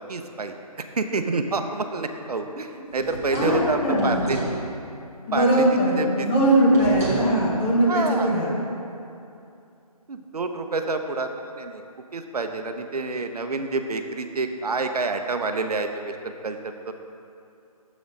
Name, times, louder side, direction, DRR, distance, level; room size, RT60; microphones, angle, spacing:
voice 1, 0.1-4.4 5.3-5.6 6.0-6.3 7.9-8.3 10.1-11.8 12.1-16.6 16.9-17.0, right 3 dB, 80° right, 6 dB, 0.6 m, -28 dB
sound 1, 2.9-4.6 6.7-7.3, right 1 dB, 25° right, 1.2 m, -30 dB
voice 2, 3.3-4.2 5.3-8.6, right 1 dB, 15° left, -5 dB, 0.8 m, -20 dB
6.9 x 5.0 x 5.3 m, 2.6 s
figure-of-eight pair, 160°, 19 cm